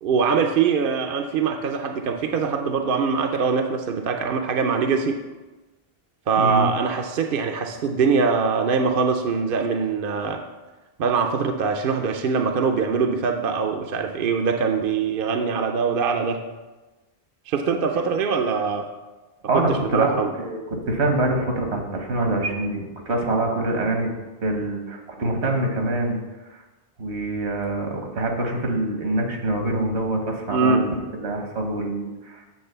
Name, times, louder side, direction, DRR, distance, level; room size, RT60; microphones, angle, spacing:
voice 1, 0.0-5.2 6.3-10.4 11.0-16.4 17.5-18.9 19.5-20.3 30.5-30.8, right 5 dB, 60° right, 4 dB, 0.7 m, -23 dB
voice 2, 6.4-6.7 19.5-24.1 24.4-26.2 27.0-30.9 31.2-32.5, right 2 dB, 75° right, 3 dB, 1.4 m, -25 dB
7.9 x 3.8 x 6.6 m, 1.2 s
omnidirectional pair, 1.1 m